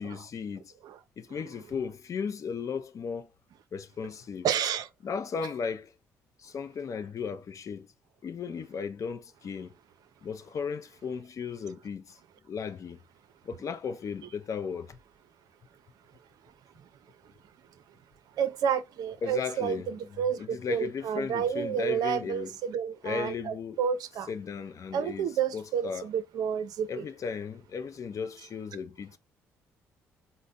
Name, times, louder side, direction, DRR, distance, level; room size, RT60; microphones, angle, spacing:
voice 1, 0.0-0.7 1.2-3.3 3.7-4.5 5.0-5.9 6.4-7.9 8.2-9.7 10.2-12.2 12.5-13.0 13.4-15.0 19.2-19.9 20.4-22.5 23.0-23.8 24.3-26.1 26.9-29.2, left 6 dB, 45° left, 0.5 m, -36 dB
voice 2, 4.4-4.9 18.4-24.3 24.9-27.1 28.7-28.8, right 8 dB, 60° right, 0.5 m, -30 dB
4.1 x 2.0 x 3.7 m
hypercardioid pair, 50°, 7 cm